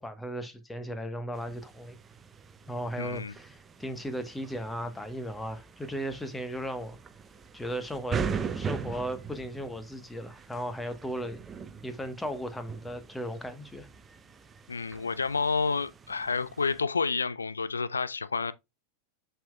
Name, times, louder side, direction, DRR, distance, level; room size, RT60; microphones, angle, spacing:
voice 1, 0.0-2.0 2.7-7.0 7.5-8.2 8.5-11.4 11.8-13.9, equal, 5° left, 1.2 m, -36 dB
sound 1, 1.3-16.8, right 6 dB, 20° right, 0.7 m, -41 dB
voice 2, 3.0-3.3 14.7-18.5, left 4 dB, 80° left, 0.5 m, -29 dB
7.4 x 5.7 x 2.3 m
figure-of-eight pair, 85°, 0 cm